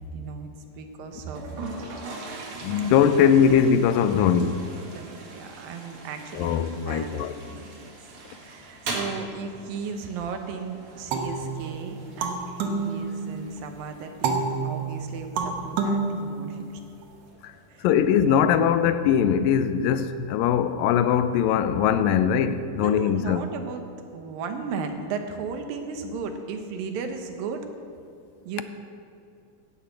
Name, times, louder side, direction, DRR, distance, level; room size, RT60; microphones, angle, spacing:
voice 1, 0.1-0.5 0.8-1.4 3.2-3.6 4.9-7.9 8.3-16.8 17.7-17.9 22.8-23.9 24.1-27.7 28.5-28.6, right 5 dB, 85° right, 2.8 m, -36 dB
Toilet flush, 1.3-18.3, right 2 dB, 45° right, 2.2 m, -41 dB
voice 2, 2.6-4.6 6.3-7.3 17.4-17.5 17.8-23.4, left 8 dB, 85° left, 2.3 m, -21 dB
sound 1, 11.1-13.6 14.2-17.0, right 4 dB, 65° right, 1.8 m, -29 dB
10.0 x 10.0 x 8.2 m
omnidirectional pair, 4.0 m